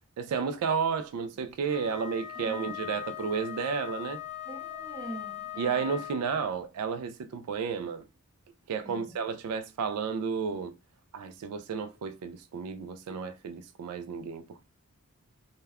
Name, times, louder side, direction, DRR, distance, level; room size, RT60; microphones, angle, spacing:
voice 1, 0.2-4.2 5.6-8.0 8.7-10.7 11.1-14.6, right 6 dB, 80° right, 0.3 m, -32 dB
Wind instrument woodwind instrument, 1.7-6.4, left 12 dB, 50° left, 0.6 m, -40 dB
voice 2, 2.4-2.7 4.5-5.7 8.8-9.2, right 1 dB, 20° right, 0.6 m, -43 dB
2.2 x 2.2 x 3.4 m
head